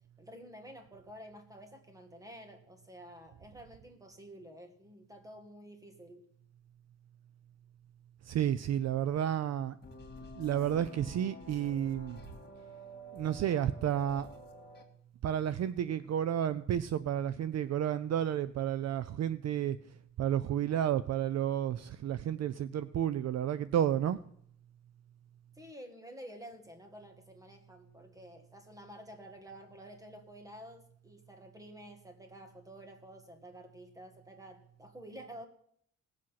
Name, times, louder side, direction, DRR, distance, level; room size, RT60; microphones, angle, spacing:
voice 1, 0.2-6.2 25.5-35.5, equal, 10° right, 1.6 m, -50 dB
voice 2, 8.3-9.8 10.4-12.2 13.1-14.3 15.2-19.8 20.2-24.2, right 10 dB, 55° right, 0.5 m, -31 dB
sound 1, 9.8-14.8, equal, 30° left, 1.9 m, -49 dB
18.5 x 7.6 x 5.7 m
wide cardioid pair, 160°, 32 cm